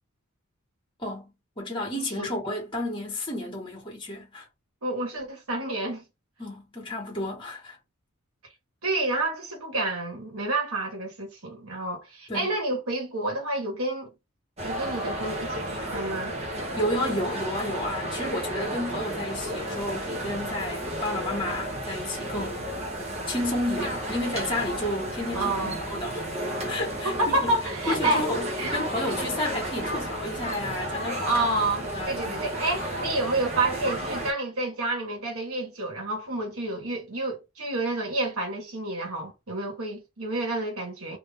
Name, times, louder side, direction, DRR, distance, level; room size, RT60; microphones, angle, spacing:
voice 1, 1.0-1.3 1.6-4.4 6.4-7.8 12.3-12.5 16.8-22.6 23.3-26.3 26.6-27.5 27.9-31.4 31.8-32.5, left 1 dB, 20° left, 1.2 m, -31 dB
voice 2, 1.9-2.3 4.8-6.0 8.8-14.1 14.6-16.4 25.3-25.8 27.0-29.1 31.2-41.2, right 2 dB, 75° right, 1.4 m, -29 dB
sound 1, 14.6-34.3, right 1 dB, 30° right, 0.8 m, -32 dB
2.7 x 2.5 x 3.4 m
head